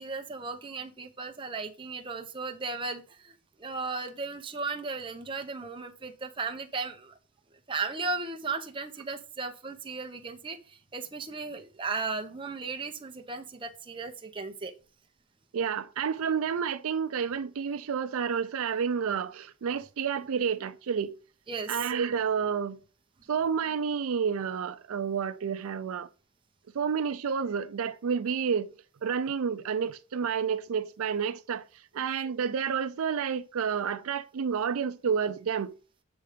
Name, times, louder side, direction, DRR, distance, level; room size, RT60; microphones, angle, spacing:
voice 1, 0.0-7.1 7.7-14.7 21.5-21.8, right 4 dB, 25° right, 0.7 m, -36 dB
voice 2, 15.5-21.2 21.7-22.8 23.3-26.1 26.7-28.7 29.0-31.6 31.9-35.8, right 6 dB, 70° right, 0.4 m, -30 dB
8.0 x 3.8 x 5.0 m
head